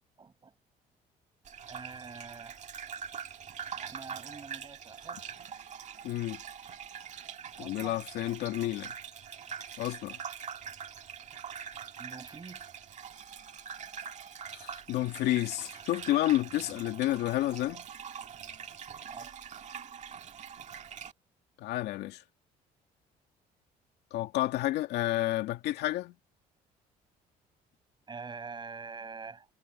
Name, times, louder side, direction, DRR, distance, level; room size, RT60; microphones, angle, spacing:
voice 1, 0.2-0.5 1.7-2.7 3.8-5.2 7.6-8.0 12.0-12.9 19.1-19.4 28.1-29.5, right 4 dB, 25° right, 7.0 m, -45 dB
Gurgling / Bathtub (filling or washing), 1.4-21.1, right 7 dB, 45° right, 1.8 m, -44 dB
voice 2, 6.0-6.4 7.6-8.9 9.8-10.2 14.5-17.8 21.6-22.2 24.1-26.1, left 15 dB, 85° left, 2.2 m, -30 dB
cardioid pair, 110°, 17 cm